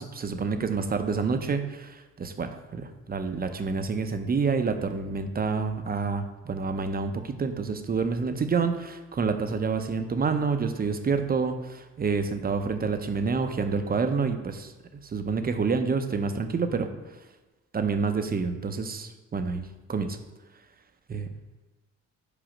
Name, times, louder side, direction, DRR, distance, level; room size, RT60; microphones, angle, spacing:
voice 1, 0.0-14.7 15.0-16.9 17.7-20.2 21.1-21.3, right 5 dB, 30° right, 8 dB, 0.6 m, -28 dB
5.1 x 4.7 x 6.0 m, 1.2 s
cardioid pair, 90°, 30 cm